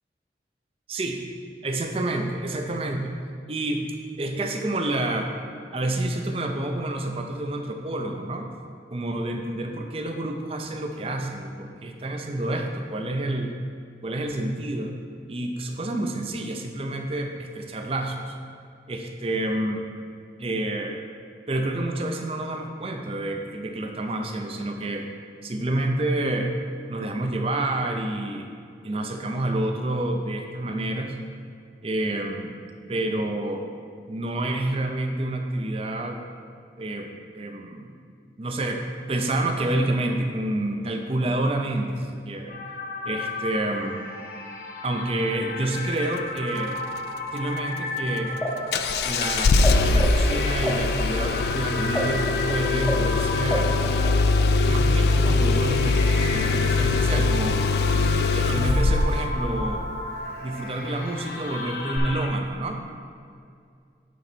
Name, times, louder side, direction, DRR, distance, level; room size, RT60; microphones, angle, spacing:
voice 1, 0.9-1.2 1.6-3.1 3.5-3.9 4.2-5.3 5.7-8.5 8.9-13.5 14.0-14.9 15.3-18.4 18.9-19.8 20.4-21.0 21.5-25.1 25.4-26.5 26.9-28.5 28.8-31.2 31.8-32.6 32.9-33.7 34.1-36.2 36.8-37.1 37.3-37.9 38.4-42.6 43.1-44.0 44.8-46.8 47.3-48.4 49.0-53.7 54.7-57.6 58.2-59.9 60.4-62.8, right 1 dB, 35° right, 4 dB, 0.5 m, -28 dB
sound 1, 42.5-62.3, left 2 dB, 50° left, 1.1 m, -34 dB
sound 2, 48.3-49.7 49.9-54.4, equal, 5° left, 0.7 m, -30 dB
Engine starting, 48.7-59.3 62.0-62.1, left 3 dB, 65° left, 0.3 m, -22 dB
9.3 x 3.9 x 4.3 m, 2.3 s
head